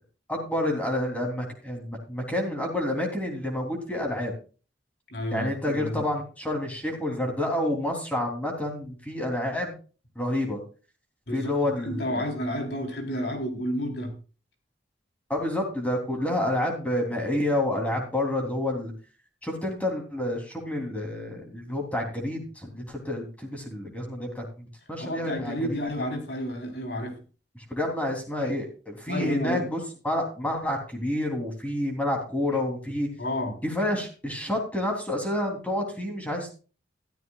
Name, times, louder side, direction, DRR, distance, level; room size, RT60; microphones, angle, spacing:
voice 1, 0.3-4.3 5.3-9.7 10.1-10.6 11.3-12.2 15.3-18.9 19.4-25.8 27.6-33.1 33.6-36.5, left 1 dB, 10° left, 1 dB, 3.3 m, -29 dB
voice 2, 5.1-6.0 11.3-14.1 25.0-27.2 28.4-28.5 29.1-29.7 33.2-33.5, equal, 70° left, 3 dB, 3.8 m, -31 dB
14.0 x 13.5 x 2.4 m, 0.35 s
head